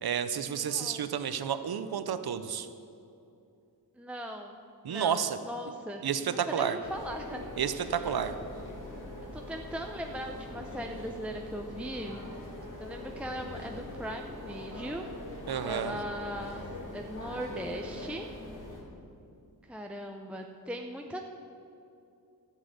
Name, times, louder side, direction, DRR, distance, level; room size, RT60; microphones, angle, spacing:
voice 1, 0.0-2.7 4.8-5.4 6.0-6.8 7.6-8.3 15.5-16.0, right 8 dB, 75° right, 11 dB, 0.7 m, -31 dB
voice 2, 0.7-1.1 4.0-4.6 4.9-7.4 7.8-8.3 9.3-12.2 12.8-15.1 15.7-16.6 16.9-18.3 19.6-21.2, equal, 5° right, 2 dB, 0.6 m, -39 dB
sound 1, 6.8-18.8, left 1 dB, 55° left, 2.7 m, -42 dB
12.5 x 7.6 x 7.9 m, 2.6 s
wide cardioid pair, 125°, 38 cm